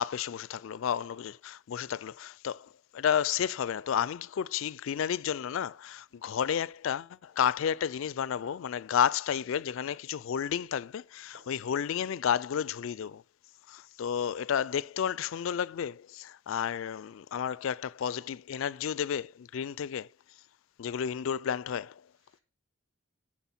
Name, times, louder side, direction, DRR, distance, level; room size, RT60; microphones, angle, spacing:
voice 1, 0.0-13.2 13.7-20.1 20.8-22.0, left 8 dB, 75° left, 0.3 m, -31 dB
voice 2, 6.1-6.3 22.1-22.4, left 1 dB, 80° right, 3.0 m, -71 dB
Glass, 6.5-11.6, equal, 45° right, 5.0 m, -65 dB
8.2 x 6.1 x 5.8 m
head